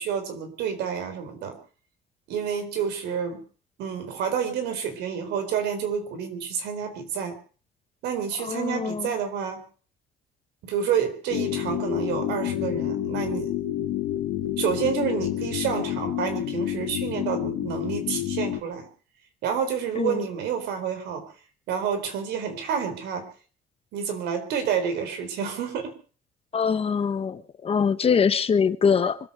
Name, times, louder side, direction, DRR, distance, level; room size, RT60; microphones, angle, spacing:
voice 1, 0.0-1.6 2.3-3.4 3.8-7.4 8.0-9.6 10.6-13.6 14.6-18.9 19.4-21.3 21.7-23.3 23.9-25.9, right 7 dB, 85° right, 4.2 m, -29 dB
voice 2, 8.5-9.1 20.0-20.2 26.5-29.2, left 6 dB, 35° left, 1.1 m, -23 dB
sound 1, 11.3-18.6, left 13 dB, 80° left, 1.3 m, -29 dB
25.0 x 8.7 x 6.7 m
cardioid pair, 110°, 17 cm